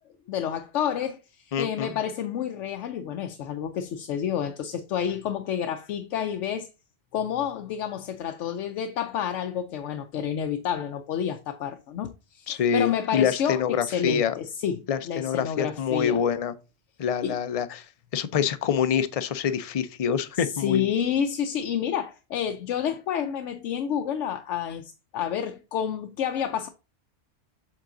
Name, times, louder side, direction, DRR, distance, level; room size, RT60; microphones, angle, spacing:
voice 1, 0.3-6.7 7.1-16.2 17.2-17.4 20.3-26.7, left 9 dB, 85° left, 0.9 m, -29 dB
voice 2, 1.5-1.9 12.5-14.3 14.9-16.5 17.0-17.8 18.1-20.9, left 7 dB, 50° left, 0.4 m, -26 dB
7.5 x 3.8 x 3.7 m
omnidirectional pair, 1.2 m